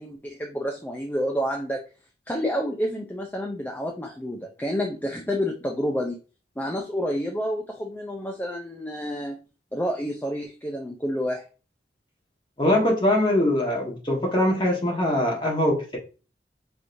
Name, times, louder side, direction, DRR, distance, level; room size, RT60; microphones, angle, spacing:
voice 1, 0.0-1.8 2.3-6.2 6.6-9.4 9.7-11.4, equal, 10° left, 1 dB, 0.4 m, -29 dB
voice 2, 12.6-16.0, left 1 dB, 25° left, -2 dB, 1.3 m, -22 dB
4.9 x 3.0 x 2.6 m, 0.34 s
head